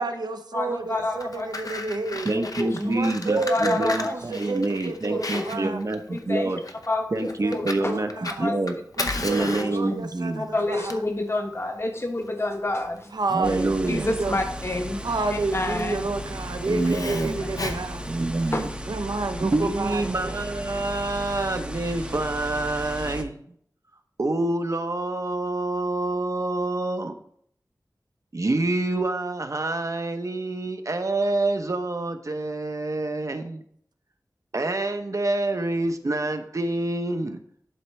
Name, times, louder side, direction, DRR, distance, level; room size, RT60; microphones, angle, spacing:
voice 1, 0.0-2.3 2.8-5.8 7.2-8.5 9.0-11.0 13.1-14.4 15.0-18.0 18.9-20.4, right 3 dB, 90° right, 8 dB, 0.7 m, -30 dB
voice 2, 0.5-1.5 2.3-3.0 3.3-4.5 5.1-5.7 6.1-6.6 6.9-8.0 8.4-8.6 9.2-10.0 10.4-13.1 13.9-15.0 15.3-16.1 17.6-17.7 18.5-18.9, left 2 dB, 40° left, 4 dB, 1.1 m, -29 dB
Fire, 1.0-18.7, left 2 dB, 60° left, 0.7 m, -36 dB
voice 3, 2.2-6.6 7.1-8.8 9.2-10.5 13.3-14.1 16.7-17.4 18.1-18.7 19.4-23.4 24.2-27.2 28.3-33.6 34.5-37.4, right 2 dB, 50° right, 7 dB, 0.7 m, -27 dB
sound 1, 13.4-23.2, equal, 15° right, 0.7 m, -35 dB
11.0 x 4.4 x 3.1 m, 0.65 s
wide cardioid pair, 70°, 7 cm